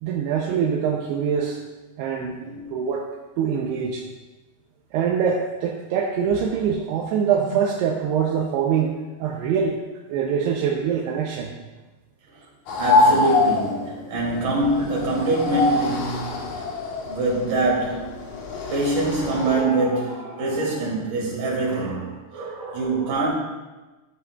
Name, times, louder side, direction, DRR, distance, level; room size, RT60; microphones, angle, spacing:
voice 1, 0.0-1.6 2.0-2.4 2.7-3.1 3.4-4.0 4.9-9.8 10.1-11.5, right 7 dB, 80° right, -1 dB, 2.6 m, -24 dB
sound 1, 12.7-19.6, left 3 dB, 75° left, 1.8 m, -24 dB
voice 2, 12.8-16.7 17.0-18.3 18.7-23.3, right 2 dB, 50° right, -5 dB, 4.0 m, -24 dB
15.0 x 7.7 x 2.4 m, 1.2 s
omnidirectional pair, 5.2 m